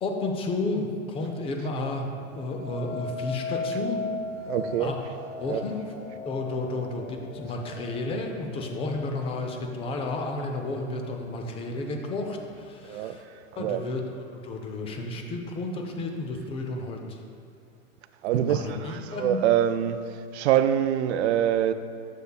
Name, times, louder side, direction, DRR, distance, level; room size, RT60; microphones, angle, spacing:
voice 1, 0.0-4.0 4.8-5.0 5.4-5.8 6.3-13.2 13.6-14.0 14.4-17.2 18.4-19.4, left 2 dB, 15° left, 0.4 m, -32 dB
sound 1, 2.2-11.3 11.9-12.3, left 3 dB, 70° left, 0.9 m, -38 dB
voice 2, 4.5-5.0 5.5-5.6 7.6-7.7 12.9-13.1 13.5-13.8 18.2-20.0 20.3-21.7, right 10 dB, 55° right, 0.5 m, -25 dB
9.8 x 6.7 x 2.3 m
hypercardioid pair, 110°, 41 cm